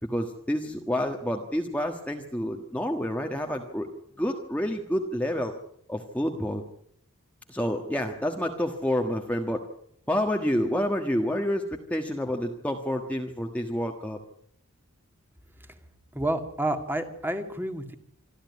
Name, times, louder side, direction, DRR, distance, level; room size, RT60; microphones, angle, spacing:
voice 1, 0.0-3.9 4.2-5.5 5.9-6.6 7.5-9.6 10.1-14.2, equal, 5° left, 2 dB, 1.4 m, -28 dB
voice 2, 16.1-17.9, right 1 dB, 10° right, 7 dB, 2.0 m, -29 dB
26.5 x 13.0 x 9.5 m, 0.70 s
head